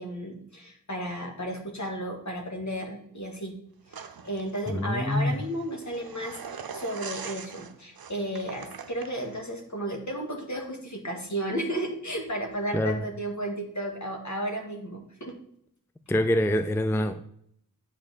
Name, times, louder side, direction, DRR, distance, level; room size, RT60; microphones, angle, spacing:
voice 1, 0.0-3.6 3.9-15.4, right 1 dB, 55° left, 1.9 m, -33 dB
sound 1, 3.9-9.4, right 6 dB, 90° right, 0.6 m, -43 dB
voice 2, 4.7-5.4 12.7-13.0 16.1-17.2, left 1 dB, 5° left, 0.4 m, -25 dB
8.4 x 5.2 x 4.1 m
wide cardioid pair, 45°, 35 cm